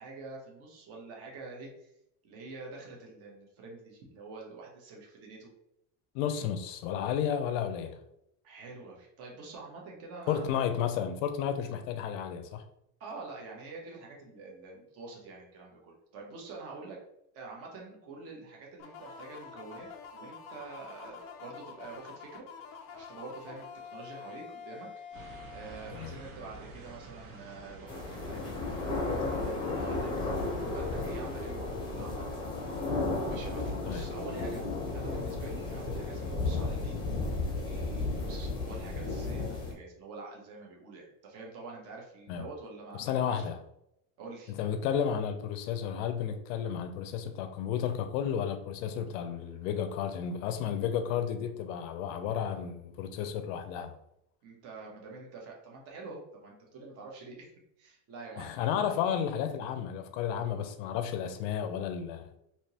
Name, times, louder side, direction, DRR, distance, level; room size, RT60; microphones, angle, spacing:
voice 1, 0.0-1.9 2.2-5.5 8.4-10.7 13.0-17.0 17.3-19.9 20.1-22.4 23.0-28.7 29.0-32.5 33.3-34.6 34.9-43.4 44.2-44.5 54.4-57.5 57.8-59.0, right 3 dB, 40° right, 0.9 m, -47 dB
voice 2, 6.1-8.0 10.3-12.7 25.9-26.1 33.8-34.1 42.3-42.4 42.9-43.6 44.5-53.9 58.4-62.2, left 8 dB, 75° left, 0.6 m, -32 dB
sound 1, 18.8-26.4, left 6 dB, 40° left, 0.4 m, -47 dB
sound 2, 25.1-31.5, right 3 dB, 70° right, 1.4 m, -49 dB
sound 3, 27.9-39.7, left 3 dB, 10° left, 0.7 m, -34 dB
3.4 x 2.8 x 2.8 m
cardioid pair, 160°, 38 cm